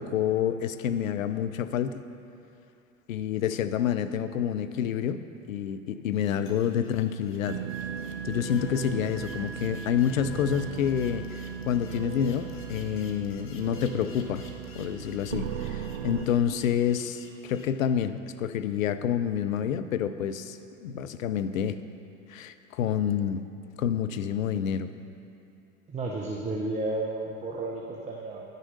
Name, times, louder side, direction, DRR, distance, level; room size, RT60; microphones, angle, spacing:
voice 1, 0.0-2.0 3.1-7.6 8.2-14.5 14.8-21.8 22.3-23.4 23.8-24.9, left 9 dB, 75° left, 11 dB, 0.6 m, -28 dB
sound 1, 6.1-17.7, left 2 dB, 30° left, 1.1 m, -52 dB
sound 2, 7.5-16.3, right 8 dB, 60° right, 0.7 m, -37 dB
voice 2, 25.9-28.4, right 2 dB, 15° right, -2 dB, 0.9 m, -32 dB
11.0 x 6.6 x 5.1 m, 2.7 s
hypercardioid pair, 90°, 41 cm